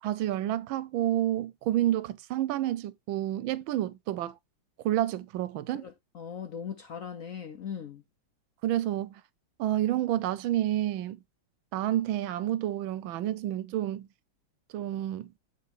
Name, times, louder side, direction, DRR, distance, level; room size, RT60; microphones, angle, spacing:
voice 1, 0.0-4.4 4.8-5.8 8.6-9.2 9.6-11.2 11.7-14.1 14.7-15.3, right 13 dB, 90° right, 1.4 m, -29 dB
voice 2, 5.7-8.0, left 7 dB, 65° left, 0.8 m, -39 dB
7.5 x 3.5 x 4.1 m
omnidirectional pair, 2.1 m